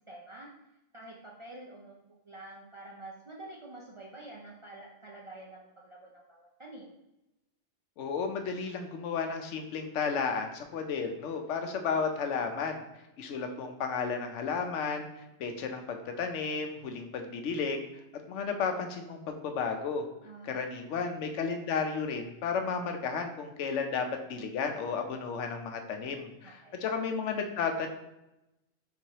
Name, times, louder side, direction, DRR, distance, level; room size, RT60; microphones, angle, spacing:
voice 1, 0.1-0.5 0.9-7.0 20.2-20.6 20.9-21.0 26.4-26.8, right 2 dB, 45° right, -3 dB, 0.4 m, -48 dB
voice 2, 8.0-12.8 13.2-15.1 15.4-17.8 18.3-20.0 20.4-27.9, left 5 dB, 85° left, 5 dB, 0.9 m, -33 dB
4.5 x 3.9 x 2.8 m, 0.91 s
omnidirectional pair, 1.2 m